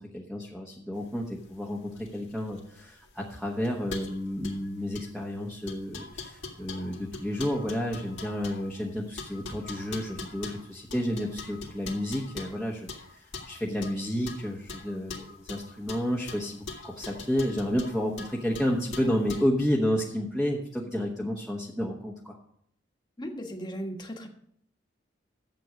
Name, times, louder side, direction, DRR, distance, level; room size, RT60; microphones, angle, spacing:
voice 1, 0.1-22.3, equal, ahead, -3 dB, 1.2 m, -31 dB
sound 1, 1.0-19.5, left 3 dB, 75° left, 2.1 m, -43 dB
voice 2, 23.2-24.3, equal, 25° left, 2 dB, 1.5 m, -36 dB
11.0 x 8.0 x 5.1 m, 0.69 s
head